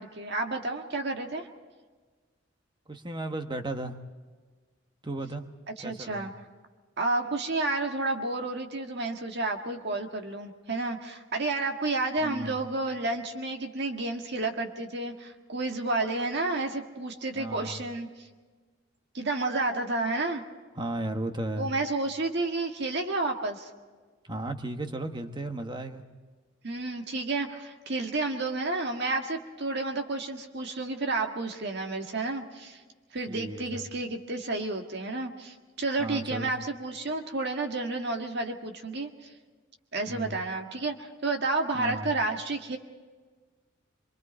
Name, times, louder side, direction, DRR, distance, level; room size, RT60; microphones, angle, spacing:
voice 1, 0.0-1.5 5.8-6.3 7.0-18.3 19.1-20.4 21.6-23.7 26.6-32.8 33.1-39.3 39.9-42.8, right 2 dB, 55° right, 3 dB, 1.7 m, -31 dB
voice 2, 2.9-3.9 5.0-5.4 5.8-6.3 12.2-12.6 17.4-17.8 20.8-21.7 24.3-26.0 33.3-33.8 36.0-36.5 40.1-40.3 41.7-42.1, right 1 dB, 25° right, 6 dB, 1.3 m, -35 dB
25.5 x 23.5 x 4.4 m, 1.4 s
head